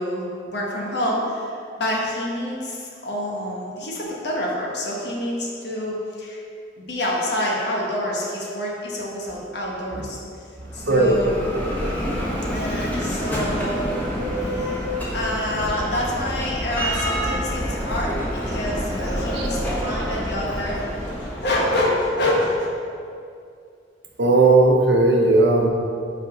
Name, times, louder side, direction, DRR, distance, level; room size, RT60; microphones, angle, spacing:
voice 1, 0.0-6.4 6.8-10.2 10.7-11.4 12.5-13.9 14.4-14.9 15.1-22.7, left 1 dB, 65° left, -3 dB, 1.3 m, -27 dB
Bell, 10.6-22.5, equal, 10° left, 1.2 m, -27 dB
voice 2, 10.8-11.2 19.3-19.5 24.2-25.7, right 2 dB, 65° right, 1 dB, 0.8 m, -16 dB
5.4 x 5.0 x 5.2 m, 2.4 s
head